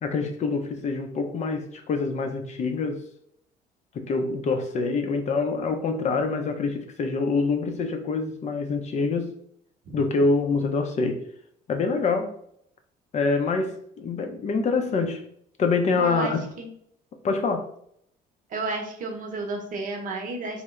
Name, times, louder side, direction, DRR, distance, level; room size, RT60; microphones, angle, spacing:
voice 1, 0.0-3.0 3.9-9.3 9.9-11.2 11.7-12.3 13.1-15.2 15.6-16.4 17.2-17.7, left 4 dB, 45° left, 0.5 m, -25 dB
voice 2, 16.0-16.7 18.5-20.6, right 3 dB, 50° right, 0.8 m, -32 dB
3.1 x 2.0 x 3.5 m
cardioid pair, 110°, 17 cm